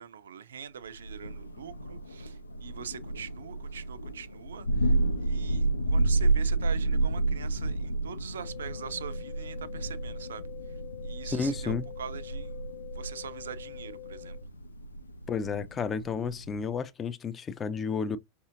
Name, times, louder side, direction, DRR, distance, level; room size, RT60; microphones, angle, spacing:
voice 1, 0.0-12.5 12.9-14.4, right 8 dB, 65° right, 0.4 m, -43 dB
Thunder, 1.0-16.8, right 2 dB, 80° left, 0.4 m, -31 dB
sound 1, 8.4-14.4, left 22 dB, 40° left, 1.0 m, -46 dB
voice 2, 11.3-11.9 15.3-18.2, left 5 dB, 20° left, 0.5 m, -31 dB
5.4 x 2.7 x 2.5 m
figure-of-eight pair, 90°, 0 cm